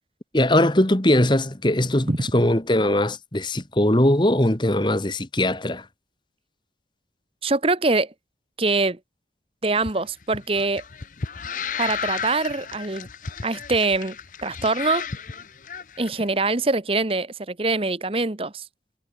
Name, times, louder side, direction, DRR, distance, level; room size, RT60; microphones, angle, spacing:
voice 1, 0.3-5.8, left 1 dB, 25° left, 1.6 m, -20 dB
voice 2, 7.4-8.1 8.6-9.0 9.6-10.8 11.8-13.1 13.4-14.1 14.4-15.1 16.0-18.6, right 3 dB, 30° right, 1.0 m, -23 dB
sound 1, 9.8-16.1, left 6 dB, 45° left, 0.7 m, -33 dB
head